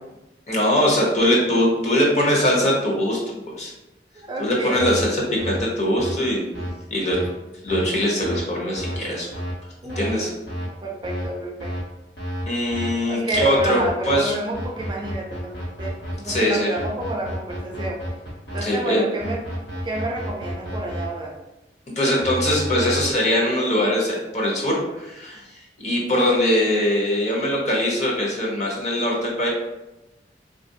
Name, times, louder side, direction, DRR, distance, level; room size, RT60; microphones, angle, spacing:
voice 1, 0.5-3.7 4.4-6.6 6.9-7.2 7.6-9.3 10.0-10.3 12.5-13.8 14.1-14.3 16.2-16.7 18.6-19.0 22.0-25.4 25.8-29.5, left 1 dB, 40° left, -3 dB, 0.8 m, -21 dB
voice 2, 4.2-4.9 9.8-10.4 10.8-11.8 13.0-18.0 18.5-19.4 19.8-21.3, right 2 dB, 25° right, -1 dB, 0.4 m, -30 dB
sound 1, 4.7-5.0 5.4-5.6 6.0-6.1 6.5-6.7 7.1-7.3 7.7-7.8 8.2-8.4 8.8-9.0 9.3-9.5 9.9-10.1 10.5-10.6 11.0-11.2 11.6-11.8 12.2-12.4 12.7-12.9 13.3-14.1 14.5-16.3 16.7-18.6 19.2-21.0 22.2-23.0, equal, 80° left, 1.3 m, -31 dB
3.3 x 2.4 x 2.7 m, 0.98 s
head